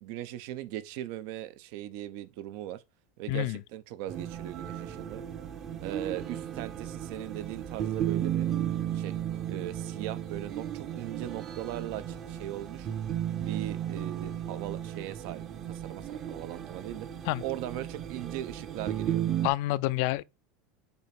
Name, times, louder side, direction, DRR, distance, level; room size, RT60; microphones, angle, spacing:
voice 1, 0.0-2.8 3.2-5.2 5.8-8.5 8.9-9.2 9.5-12.9 13.3-17.1 17.4-19.2, right 13 dB, 65° right, 0.6 m, -39 dB
voice 2, 3.3-3.6 17.3-17.4 19.4-20.2, left 17 dB, 65° left, 0.4 m, -28 dB
sound 1, 4.1-19.5, right 10 dB, 35° right, 0.8 m, -34 dB
7.0 x 2.9 x 5.9 m
supercardioid pair, 135°, 0 cm